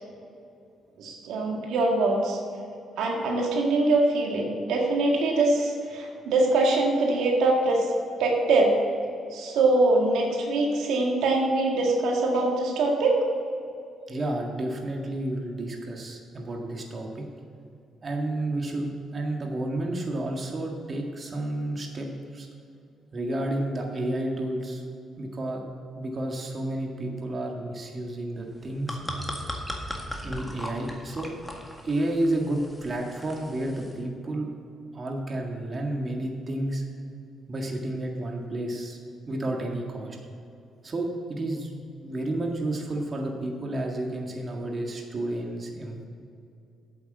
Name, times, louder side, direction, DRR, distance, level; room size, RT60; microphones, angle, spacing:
voice 1, 1.0-2.4 3.0-7.9 8.2-8.7 9.3-13.2, right 2 dB, 85° right, 0 dB, 1.8 m, -23 dB
voice 2, 14.1-17.2 18.0-22.5 23.1-24.8 25.2-25.6 25.9-29.0 30.2-31.3 31.8-34.5 34.9-36.8 37.5-39.0 39.3-40.2 40.8-41.7 42.0-46.0, right 1 dB, 35° right, 1 dB, 1.8 m, -31 dB
sound 1, 28.5-34.0, equal, 5° left, 1.8 m, -38 dB
8.4 x 8.2 x 7.5 m, 2.5 s
cardioid pair, 90°, 0 cm